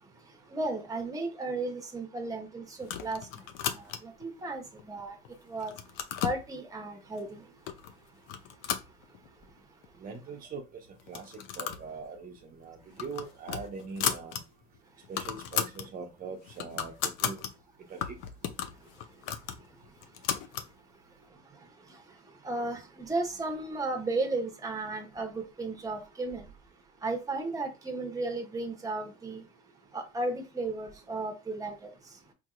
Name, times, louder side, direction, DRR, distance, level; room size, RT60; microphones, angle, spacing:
voice 1, 0.5-3.2 3.7-5.2 5.5-5.7 6.2-7.4 22.4-26.5 27.0-29.4 29.9-31.9, right 2 dB, 15° right, 1.1 m, -34 dB
sound 1, 2.8-4.2 4.8-5.3 5.6-6.4 7.2-7.3 7.7-7.9 8.3-9.5 9.8-9.9 10.2-10.3 11.0-11.9 12.2-12.4 12.8-14.4 14.8-14.9 15.0-15.9 16.3-17.5 18.0-20.7, left 9 dB, 80° left, 0.6 m, -35 dB
voice 2, 10.0-10.6 11.1-14.4 15.1-17.4 17.9-18.2, right 5 dB, 45° right, 0.8 m, -42 dB
4.5 x 2.8 x 2.4 m
supercardioid pair, 95°, 19 cm